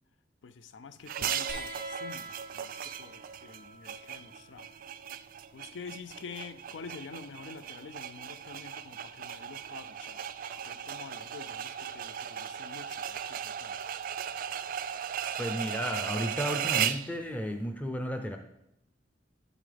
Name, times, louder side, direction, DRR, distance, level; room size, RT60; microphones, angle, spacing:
voice 1, 0.4-4.7 5.5-10.2 10.5-13.8, left 5 dB, 85° left, 12 dB, 0.4 m, -47 dB
sound 1, 1.1-17.1, right 9 dB, 50° right, 0.3 m, -37 dB
sound 2, 1.5-8.6 9.9-10.7 12.0-12.1, right 1 dB, 60° left, 1.9 m, -49 dB
voice 2, 15.4-18.4, equal, 10° left, 5 dB, 0.5 m, -33 dB
11.0 x 5.0 x 3.4 m, 0.82 s
head